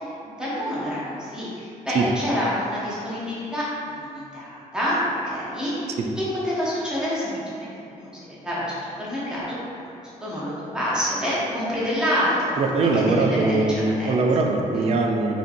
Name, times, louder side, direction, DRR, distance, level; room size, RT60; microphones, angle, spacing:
voice 1, 0.0-5.9 6.2-8.1 8.4-9.6 10.2-13.6 14.0-14.1 14.8-14.9, equal, 5° right, -9 dB, 0.9 m, -27 dB
voice 2, 12.6-15.4, right 3 dB, 50° right, 2 dB, 0.4 m, -21 dB
5.0 x 2.8 x 2.6 m, 2.5 s
wide cardioid pair, 175°, 14 cm